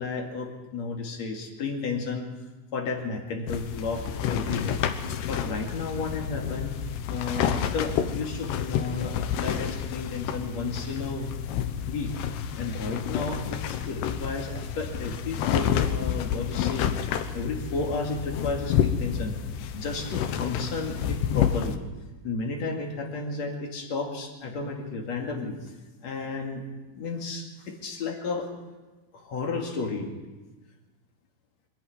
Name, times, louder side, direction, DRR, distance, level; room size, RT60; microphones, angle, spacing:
voice 1, 0.0-2.3 2.7-4.8 5.3-6.8 7.1-11.3 11.9-12.1 12.6-16.9 17.3-19.3 19.7-21.8 22.2-25.6 26.0-26.6 26.9-28.5 29.2-30.1, left 4 dB, 45° left, 2 dB, 2.6 m, -32 dB
sound 1, 3.5-21.8, left 9 dB, 75° left, 2.8 m, -29 dB
25.0 x 11.0 x 9.6 m, 1.2 s
omnidirectional pair, 5.6 m